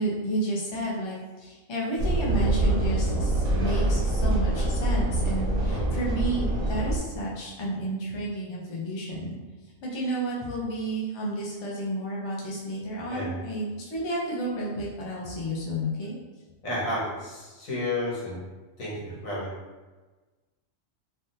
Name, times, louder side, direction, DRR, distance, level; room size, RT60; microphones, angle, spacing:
voice 1, 0.0-9.3 9.8-16.2, right 1 dB, 30° left, -5 dB, 0.5 m, -31 dB
sound 1, 2.0-7.0, right 2 dB, 40° right, 0.6 m, -25 dB
voice 2, 16.6-18.4 18.8-19.5, left 1 dB, 80° left, -6 dB, 1.5 m, -32 dB
3.4 x 2.4 x 2.7 m, 1.2 s
omnidirectional pair, 1.4 m